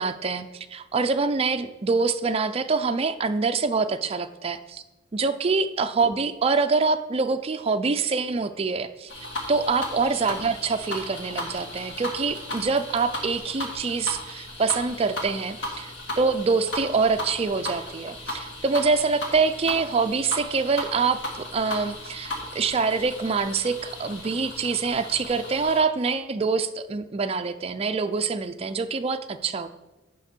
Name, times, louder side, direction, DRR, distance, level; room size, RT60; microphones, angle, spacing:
voice 1, 0.0-4.8 5.1-9.1 9.5-29.7, right 4 dB, 30° right, 9 dB, 0.4 m, -25 dB
sound 1, 9.1-25.8, left 1 dB, 75° left, 1.7 m, -36 dB
11.0 x 4.4 x 4.4 m, 1.1 s
head